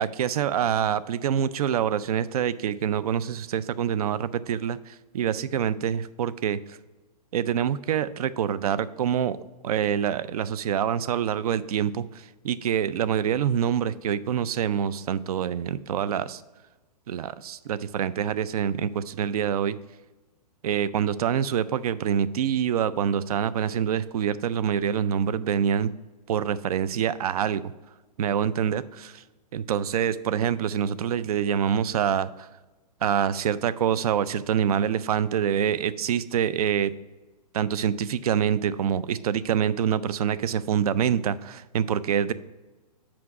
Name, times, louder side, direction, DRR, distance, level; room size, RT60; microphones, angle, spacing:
voice 1, 0.0-6.6 7.3-9.4 9.6-16.4 17.1-19.8 20.6-25.9 26.3-27.6 28.2-29.2 29.5-32.5 33.0-36.9 37.5-42.3, right 8 dB, 65° right, 17 dB, 0.4 m, -26 dB
6.1 x 4.8 x 5.9 m, 1.2 s
hypercardioid pair, 140°, 21 cm